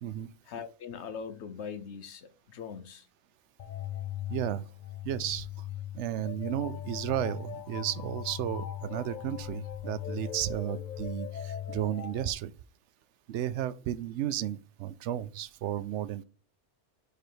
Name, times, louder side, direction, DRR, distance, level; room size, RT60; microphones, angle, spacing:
voice 1, 0.5-3.1, left 6 dB, 75° left, 1.1 m, -41 dB
sound 1, 3.6-12.3, left 11 dB, 55° left, 0.5 m, -39 dB
voice 2, 4.3-4.6 5.0-5.7 5.9-12.5 13.3-16.2, right 11 dB, 80° right, 0.9 m, -33 dB
5.0 x 4.9 x 4.5 m
omnidirectional pair, 1.2 m